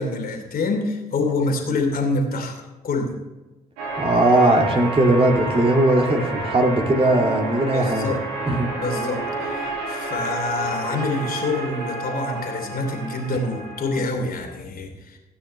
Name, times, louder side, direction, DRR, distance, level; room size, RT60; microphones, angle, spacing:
voice 1, 0.0-3.2 7.7-8.2 8.8-15.2, left 3 dB, 50° left, 3 dB, 2.8 m, -26 dB
sound 1, 3.8-14.0, right 2 dB, 75° right, 2.6 m, -29 dB
voice 2, 4.0-8.2 8.5-8.7, right 1 dB, 30° right, 2 dB, 2.2 m, -19 dB
17.0 x 9.4 x 3.2 m, 1.1 s
figure-of-eight pair, 45°, 20 cm